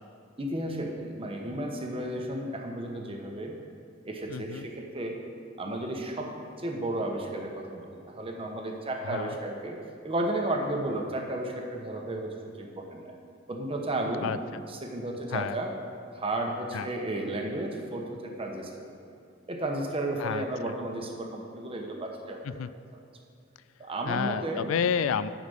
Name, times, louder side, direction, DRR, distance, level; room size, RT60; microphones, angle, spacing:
voice 1, 0.4-3.6 4.0-5.1 5.6-9.8 10.0-13.1 13.5-14.3 14.7-15.7 16.1-18.9 19.5-22.6 23.8-24.7, right 1 dB, 30° right, 1 dB, 1.0 m, -33 dB
voice 2, 4.3-4.7 9.1-9.4 14.2-14.6 15.3-15.6 16.7-16.9 20.2-20.7 22.4-22.7 24.1-25.3, left 7 dB, 90° left, 15 dB, 0.4 m, -30 dB
11.5 x 5.1 x 7.9 m, 2.4 s
head